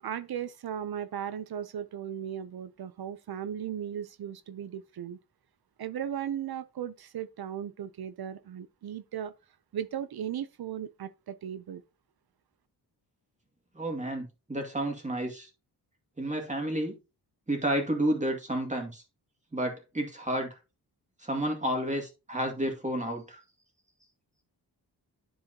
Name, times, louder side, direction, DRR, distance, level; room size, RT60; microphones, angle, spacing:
voice 1, 0.0-5.2 5.8-9.3 9.7-11.8, right 9 dB, 65° right, 0.6 m, -36 dB
voice 2, 13.7-15.5 16.2-16.9 17.5-19.0 19.5-20.5 21.2-23.4, right 1 dB, 15° right, 2.2 m, -31 dB
10.5 x 4.7 x 2.8 m
wide cardioid pair, 90°, 40 cm